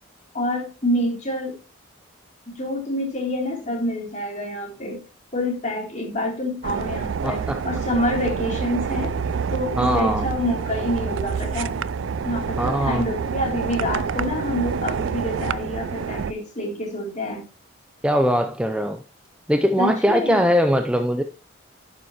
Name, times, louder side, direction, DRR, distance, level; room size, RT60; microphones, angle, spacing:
voice 1, 0.3-1.6 2.5-5.0 5.3-9.1 9.5-11.7 12.2-17.4 19.8-20.4, left 1 dB, 35° left, 3.0 m, -27 dB
sound 1, 6.6-16.3, right 6 dB, 65° right, 0.4 m, -27 dB
voice 2, 7.2-7.6 9.8-10.3 12.6-13.0 18.0-19.0 19.5-21.2, equal, 5° right, 0.4 m, -21 dB
sound 2, 8.9-15.5, left 1 dB, 85° left, 2.3 m, -39 dB
11.0 x 7.1 x 2.9 m
head